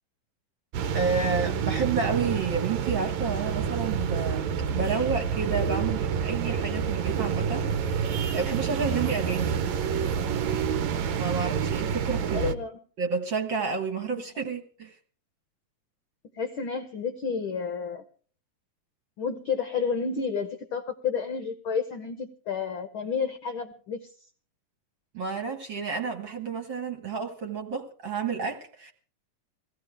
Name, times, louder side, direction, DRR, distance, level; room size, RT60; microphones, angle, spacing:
sound 1, 0.7-12.5, right 7 dB, 70° right, 2.0 m, -28 dB
voice 1, 0.9-9.6 11.2-12.5 13.0-14.9 25.1-28.9, right 5 dB, 45° right, 1.9 m, -30 dB
voice 2, 12.3-12.8 14.1-14.2 16.3-18.0 19.2-24.1, left 6 dB, 70° left, 1.2 m, -31 dB
21.5 x 16.0 x 3.5 m
omnidirectional pair, 3.7 m